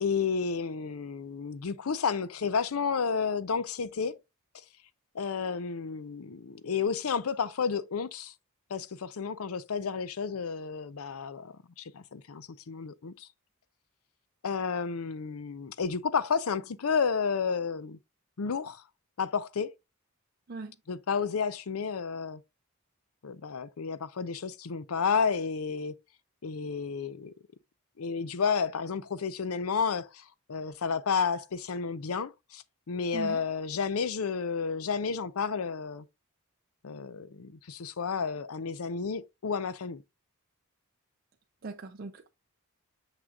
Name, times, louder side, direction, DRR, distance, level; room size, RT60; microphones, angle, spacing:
voice 1, 0.0-4.2 5.1-8.3 8.7-13.3 14.4-18.0 18.4-18.8 19.2-19.7 20.9-22.4 23.2-25.9 26.4-27.3 28.0-30.2 30.5-36.0 36.8-40.0, left 5 dB, 90° left, 0.6 m, -31 dB
voice 2, 41.6-42.3, right 3 dB, 45° right, 0.6 m, -39 dB
6.6 x 6.1 x 2.4 m
head